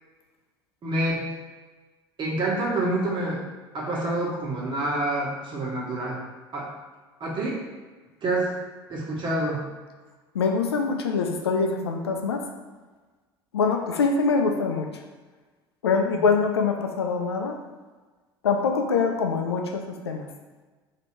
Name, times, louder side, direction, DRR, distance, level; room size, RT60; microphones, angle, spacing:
voice 1, 0.8-1.3 2.2-3.4 3.7-6.2 6.5-6.7 7.2-7.6 8.2-8.5 8.9-9.7 16.1-16.2, right 2 dB, 35° right, -4 dB, 1.5 m, -27 dB
voice 2, 10.3-12.4 13.5-14.9 15.8-17.6 18.4-20.3, left 4 dB, 80° left, 3 dB, 0.5 m, -24 dB
3.3 x 2.8 x 4.5 m, 1.3 s
figure-of-eight pair, 65°, 13 cm